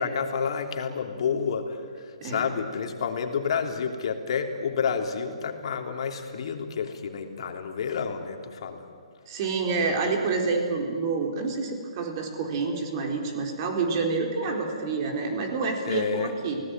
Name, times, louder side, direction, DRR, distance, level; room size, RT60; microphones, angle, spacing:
voice 1, 0.0-8.9 15.8-16.3, left 6 dB, 60° left, 4 dB, 3.3 m, -29 dB
voice 2, 9.3-16.6, right 4 dB, 40° right, 3 dB, 4.2 m, -28 dB
29.5 x 18.5 x 9.2 m, 2.1 s
hypercardioid pair, 135°, 3 cm